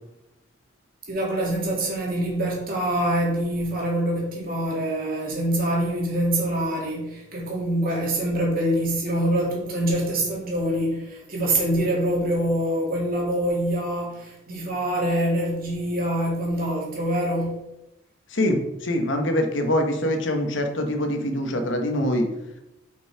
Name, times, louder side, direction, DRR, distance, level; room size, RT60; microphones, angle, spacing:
voice 1, 1.1-17.6, right 1 dB, 45° right, -3 dB, 2.2 m, -25 dB
voice 2, 18.3-22.3, left 1 dB, 70° left, 5 dB, 1.0 m, -24 dB
5.4 x 5.3 x 4.8 m, 0.91 s
head